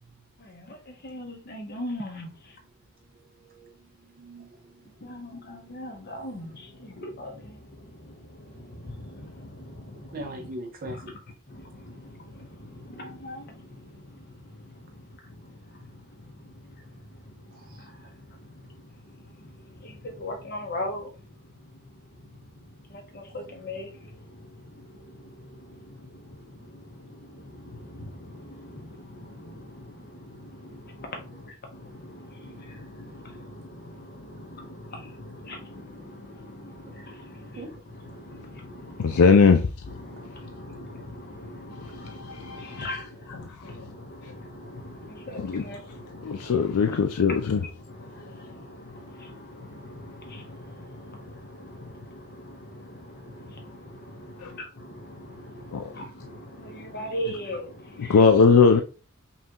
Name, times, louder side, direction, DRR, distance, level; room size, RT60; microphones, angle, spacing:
voice 1, 0.4-2.6 4.8-10.5 10.8-11.2 11.5-39.3 39.8-58.5, left 1 dB, 45° left, 0.9 m, -41 dB
voice 2, 3.1-5.1 5.4-5.8 6.0-6.1 8.5-8.7 10.1-11.0 17.5-17.9 32.4-33.6 34.0-34.3 36.8-37.0 37.5-37.8, right 1 dB, 40° right, 0.5 m, -43 dB
voice 3, 39.0-39.7 42.1-42.8 43.5-43.7 44.2-44.3 45.4-45.6 46.2-47.6 54.4-54.5 55.7-55.9 58.1-58.8, left 5 dB, 85° left, 0.4 m, -20 dB
5.5 x 2.3 x 2.8 m
head